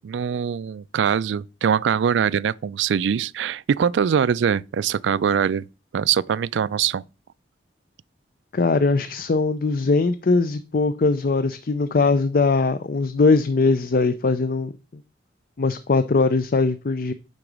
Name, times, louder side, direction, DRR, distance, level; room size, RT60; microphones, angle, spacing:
voice 1, 0.0-5.6 5.9-7.0, right 7 dB, 80° right, 0.3 m, -22 dB
voice 2, 8.5-14.7 15.6-17.1, left 3 dB, 50° left, 0.5 m, -20 dB
9.8 x 4.0 x 6.0 m
head